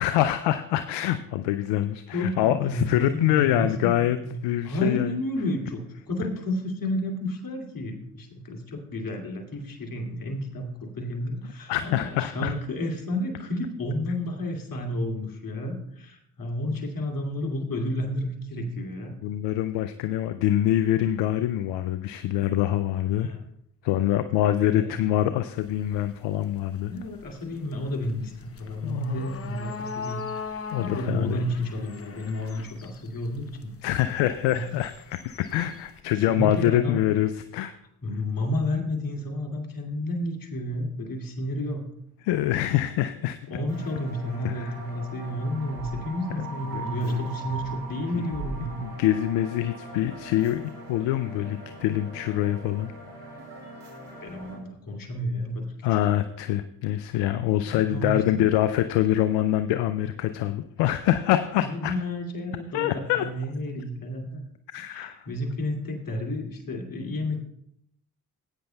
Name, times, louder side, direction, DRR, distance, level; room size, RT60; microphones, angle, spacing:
voice 1, 0.0-4.2 4.4-5.1 11.7-12.5 19.2-23.3 23.8-26.9 28.8-29.2 30.7-31.4 33.8-37.7 42.2-43.4 44.4-44.8 46.7-47.2 48.1-48.3 48.8-50.6 50.9-52.9 55.8-61.9 62.7-63.3 64.7-65.3, left 12 dB, 70° left, 11 dB, 0.6 m, -25 dB
voice 2, 2.1-4.4 4.6-5.8 6.1-19.1 23.2-23.4 24.8-25.1 26.9-30.2 30.4-33.7 34.5-34.6 36.3-37.0 38.0-41.8 43.5-48.8 54.2-55.7 57.7-58.5 61.6-64.4 64.8-67.4, left 1 dB, 50° left, 2 dB, 2.5 m, -31 dB
sound 1, 25.6-36.0, left 5 dB, 30° left, 0.9 m, -41 dB
sound 2, 43.7-54.6, right 3 dB, 65° right, 3.5 m, -40 dB
16.0 x 8.9 x 2.3 m, 0.75 s
hypercardioid pair, 45°, 43 cm